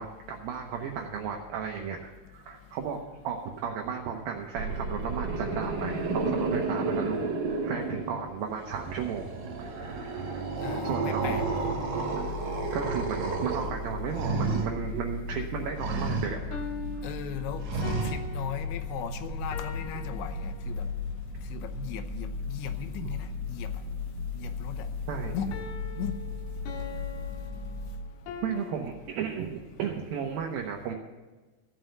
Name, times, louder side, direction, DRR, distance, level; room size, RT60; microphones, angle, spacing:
voice 1, 0.0-3.0 3.2-7.3 7.6-9.3 9.6-10.5 10.8-11.4 12.2-12.3 12.7-16.6 16.9-17.0 19.9-20.0 25.1-25.4 28.4-30.9, right 7 dB, 75° right, 2 dB, 2.2 m, -34 dB
sound 1, 4.6-8.3 8.6-14.7 15.8-16.3 17.7-18.2, right 3 dB, 55° right, 2.6 m, -31 dB
voice 2, 10.6-11.4 17.0-20.8 21.5-23.7 24.3-24.9 25.3-25.5 26.0-26.1, left 9 dB, 90° left, 8 dB, 3.2 m, -38 dB
sound 2, 10.7-12.0 16.5-21.0 25.5-28.8, left 4 dB, 70° left, 3.1 m, -43 dB
sound 3, 11.2-27.9, left 3 dB, 35° left, 1.4 m, -37 dB
14.5 x 6.2 x 9.1 m, 1.2 s
omnidirectional pair, 5.1 m